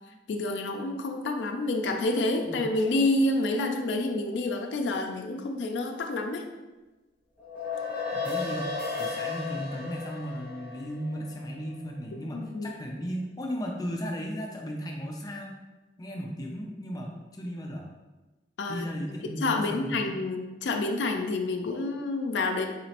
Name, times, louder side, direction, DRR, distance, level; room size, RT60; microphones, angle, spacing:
voice 1, 0.3-6.5 12.1-12.7 18.6-18.9 19.4-22.7, left 2 dB, 85° left, 4 dB, 0.4 m, -28 dB
sound 1, 7.4-12.0, left 4 dB, 10° right, 1.3 m, -34 dB
voice 2, 8.1-8.7 9.0-15.5 16.0-17.9 18.7-20.1, equal, 20° left, 0 dB, 0.4 m, -35 dB
4.1 x 2.9 x 2.9 m, 1.1 s
head